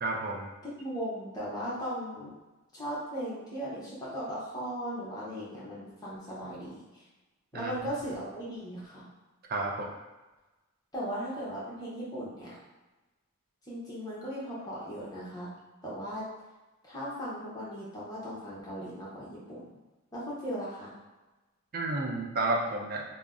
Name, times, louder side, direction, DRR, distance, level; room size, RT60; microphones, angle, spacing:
voice 1, 0.0-0.5 7.5-7.7 9.5-9.9 21.7-23.0, right 2 dB, 40° right, 1 dB, 0.4 m, -31 dB
voice 2, 0.6-2.3 2.7-6.8 7.5-9.1 10.9-12.6 13.7-15.5 15.8-16.3 16.8-19.8 20.1-20.9, equal, 15° left, -7 dB, 0.7 m, -37 dB
2.5 x 2.0 x 3.4 m, 1.1 s
head